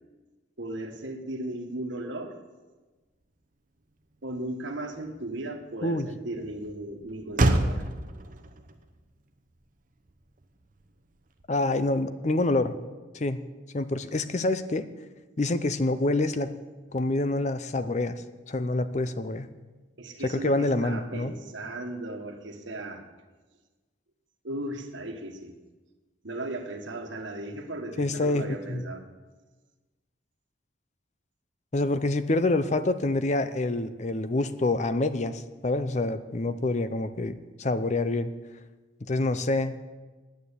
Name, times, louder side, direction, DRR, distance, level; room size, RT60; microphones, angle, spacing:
voice 1, 0.6-2.4 4.2-7.8 20.0-23.1 24.4-25.5 26.2-29.0, right 1 dB, 70° right, 4 dB, 1.5 m, -36 dB
Motor vehicle (road), 3.2-11.9, right 1 dB, 40° right, 0.8 m, -32 dB
voice 2, 11.5-12.8 13.1-13.4 13.7-14.9 15.4-16.5 16.9-18.2 18.5-19.5 20.2-21.3 28.0-28.8 31.7-38.3 39.1-39.8, left 2 dB, 35° left, 12 dB, 0.5 m, -27 dB
9.4 x 9.3 x 8.3 m, 1.3 s
head